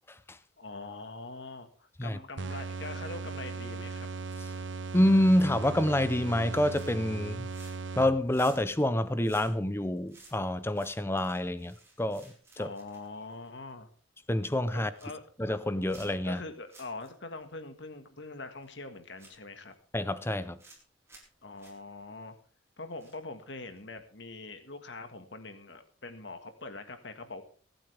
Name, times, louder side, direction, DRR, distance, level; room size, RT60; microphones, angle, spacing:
voice 1, 0.6-4.1 12.6-13.9 14.7-15.2 16.2-19.7 21.4-22.3 22.8-27.4, left 3 dB, 60° left, 1.7 m, -43 dB
sound 1, 2.4-8.5, right 4 dB, 65° right, 0.8 m, -38 dB
voice 2, 4.9-7.5 8.0-12.7 14.3-14.9 15.4-16.4 19.9-20.6, left 1 dB, 10° left, 0.6 m, -27 dB
sound 2, 6.7-7.1 7.4-7.9 8.2-13.8 14.2-14.4 14.7-15.2 15.9-16.4 16.7-17.1 17.4-17.5 18.6-18.7 19.2-19.7 20.3-20.8 21.1-21.3 21.6-21.7 23.0-23.4 23.8-23.9, right 2 dB, 15° right, 4.2 m, -56 dB
23.0 x 9.0 x 3.5 m
head